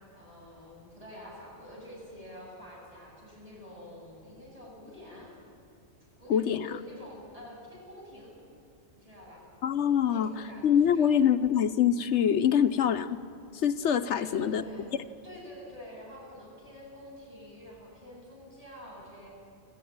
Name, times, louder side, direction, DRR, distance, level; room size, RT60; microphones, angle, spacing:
voice 1, 0.1-5.3 6.0-8.4 8.9-9.4 10.1-11.1 14.1-14.9 15.2-19.3, equal, 30° right, -4 dB, 8.0 m, -48 dB
voice 2, 6.3-6.7 9.6-13.2 13.5-14.9, left 8 dB, 75° left, 10 dB, 1.0 m, -25 dB
25.5 x 15.0 x 9.4 m, 2.6 s
omnidirectional pair, 1.2 m